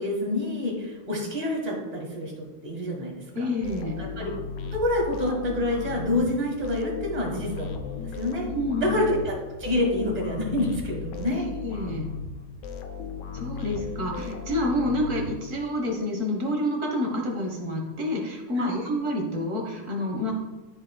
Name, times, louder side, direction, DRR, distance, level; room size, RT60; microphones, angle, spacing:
voice 1, 0.0-3.5 4.0-4.3 4.7-8.5 8.8-11.4 18.6-18.8, left 1 dB, 20° right, -1 dB, 1.5 m, -27 dB
voice 2, 3.3-4.0 8.5-8.9 11.3-12.1 13.3-20.3, left 1 dB, 45° right, 1 dB, 1.6 m, -28 dB
sound 1, 3.6-15.9, left 5 dB, 70° left, 1.2 m, -36 dB
12.5 x 5.2 x 2.3 m, 1.1 s
omnidirectional pair, 2.2 m